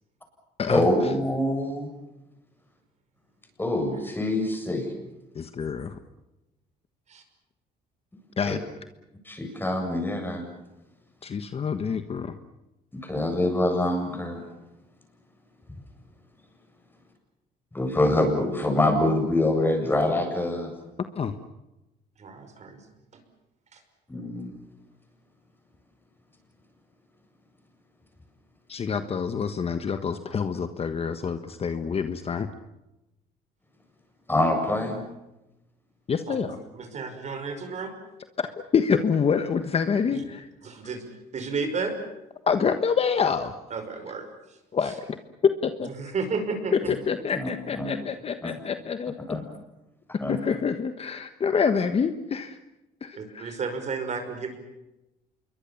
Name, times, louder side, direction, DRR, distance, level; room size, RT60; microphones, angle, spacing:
voice 1, 0.7-1.9 3.6-4.9 8.5-8.6 9.3-10.4 12.9-14.4 17.7-20.7 24.1-24.5 34.3-35.0 46.8-46.9 47.3-47.9 48.4-48.5 49.3-49.4 50.2-50.4, left 1 dB, 10° left, 4 dB, 7.8 m, -25 dB
voice 2, 5.3-5.9 8.4-8.6 11.2-12.3 21.2-21.3 28.7-32.5 36.1-36.6 38.4-38.5 38.7-40.4 42.5-43.5 44.7-44.9 45.4-45.9 46.7-49.1 50.3-52.6 53.0-53.6, left 6 dB, 35° left, 9 dB, 1.4 m, -26 dB
voice 3, 22.2-22.8 23.7-23.8 36.3-36.5 36.7-37.9 40.1-40.2 40.6-41.0 41.3-42.0 43.7-44.2 46.0-46.7 53.2-54.6, right 4 dB, 45° right, 6 dB, 5.5 m, -32 dB
27.5 x 23.0 x 7.3 m, 0.96 s
cardioid pair, 110°, 17 cm